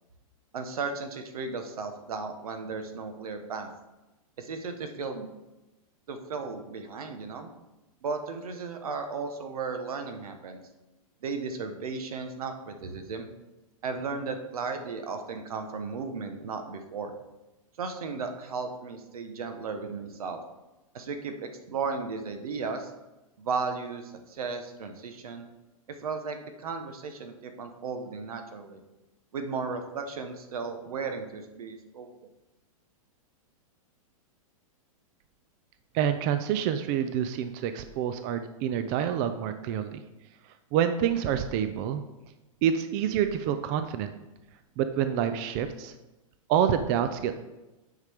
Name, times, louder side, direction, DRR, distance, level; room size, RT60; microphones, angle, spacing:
voice 1, 0.5-3.7 4.4-5.3 6.1-7.5 8.0-10.6 11.2-13.3 13.8-17.1 17.8-20.4 20.9-22.9 23.4-25.5 25.9-28.8 29.3-32.1, right 4 dB, 90° right, 7 dB, 1.1 m, -35 dB
voice 2, 35.9-40.0 40.7-42.0 42.6-44.1 44.8-45.9 46.5-47.3, right 9 dB, 35° right, 9 dB, 0.4 m, -27 dB
9.5 x 5.0 x 3.5 m, 1.0 s
hypercardioid pair, 145°, 18 cm